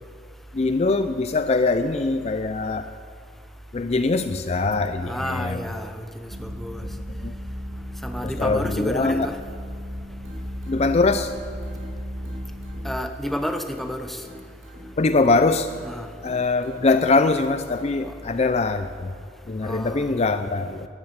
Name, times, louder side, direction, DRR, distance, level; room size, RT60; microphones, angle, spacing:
voice 1, 0.5-2.9 3.7-5.7 6.9-7.3 8.2-9.3 10.7-11.3 15.0-15.7 16.2-19.1 19.5-20.9, left 3 dB, 35° left, 10 dB, 0.4 m, -22 dB
voice 2, 5.0-6.8 8.0-9.4 12.8-14.2 15.8-16.1 19.6-20.1, equal, ahead, 6 dB, 0.8 m, -30 dB
sound 1, 6.3-13.0, equal, 40° right, 1.9 m, -35 dB
sound 2, 10.2-18.2, equal, 85° right, 4.5 m, -47 dB
13.0 x 11.0 x 8.8 m, 2.2 s
head